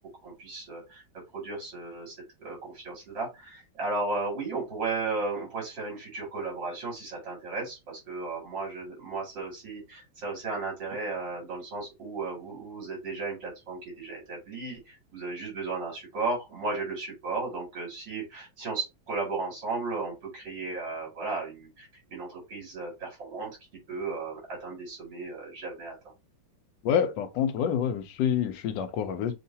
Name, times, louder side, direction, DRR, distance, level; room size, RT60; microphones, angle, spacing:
voice 1, 0.2-1.0 1.3-23.6 23.9-25.9, right 3 dB, 75° right, 3.2 m, -35 dB
voice 2, 26.8-29.4, left 8 dB, 75° left, 1.4 m, -27 dB
6.6 x 2.4 x 2.7 m
omnidirectional pair, 2.0 m